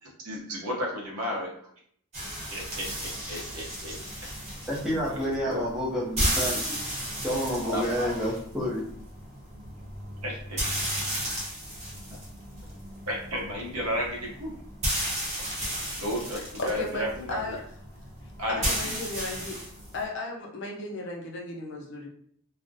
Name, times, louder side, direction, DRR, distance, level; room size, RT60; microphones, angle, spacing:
voice 1, 0.0-1.5 2.5-4.0 5.1-5.6 7.7-8.1 10.2-10.6 12.1-12.2 13.1-14.6 16.0-17.6 18.4-18.9, equal, 85° right, -2 dB, 0.8 m, -33 dB
sound 1, 2.1-20.0, equal, 30° right, 0.8 m, -34 dB
voice 2, 4.7-8.8, equal, ahead, -7 dB, 0.5 m, -30 dB
voice 3, 16.3-17.6 18.5-19.6 19.9-22.1, left 2 dB, 55° left, 0 dB, 0.5 m, -35 dB
2.4 x 2.0 x 2.6 m, 0.64 s
head